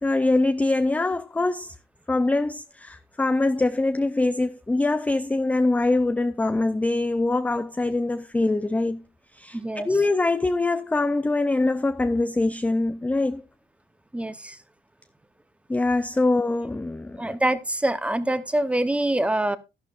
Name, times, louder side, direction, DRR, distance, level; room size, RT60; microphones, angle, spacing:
voice 1, 0.0-1.7 2.1-9.0 9.3-13.4 15.7-17.4, left 2 dB, 10° left, 0.5 m, -23 dB
voice 2, 9.5-9.9 14.1-14.6 17.2-19.6, right 1 dB, 5° right, 0.9 m, -25 dB
12.0 x 11.5 x 2.5 m
cardioid pair, 110°, 17 cm